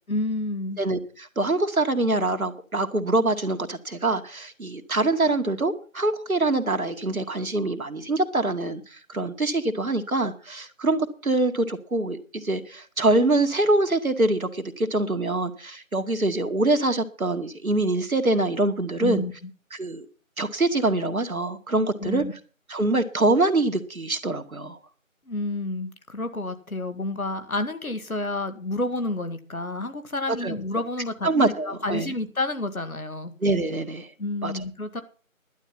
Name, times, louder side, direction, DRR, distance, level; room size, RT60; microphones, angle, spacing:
voice 1, 0.1-0.8 19.0-19.3 22.0-22.3 25.3-31.3 31.7-33.3 34.2-35.0, left 2 dB, 80° left, 9 dB, 2.0 m, -29 dB
voice 2, 0.8-19.2 19.7-20.1 20.4-22.2 22.7-24.8 30.4-30.5 31.2-32.1 33.4-34.1 34.4-34.5, right 2 dB, 80° right, 7 dB, 1.9 m, -24 dB
11.5 x 9.8 x 5.8 m, 0.38 s
figure-of-eight pair, 170°, 41 cm